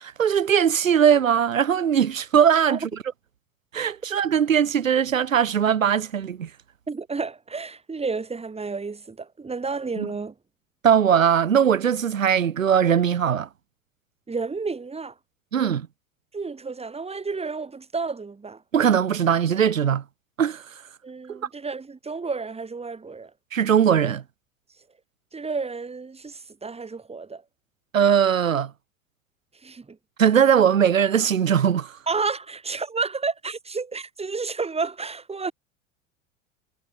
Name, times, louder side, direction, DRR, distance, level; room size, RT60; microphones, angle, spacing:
voice 1, 0.0-2.9 3.7-6.5 10.0-10.1 10.8-13.5 15.5-15.9 18.7-20.0 20.4-20.6 21.3-21.4 23.5-24.2 27.9-28.7 30.2-32.0, right 8 dB, 80° right, 3.4 m, -20 dB
voice 2, 6.9-10.3 14.3-15.1 16.3-18.6 21.0-23.3 25.3-27.4 29.6-30.0 32.1-35.5, right 4 dB, 15° right, 5.2 m, -31 dB
figure-of-eight pair, 80°, 39 cm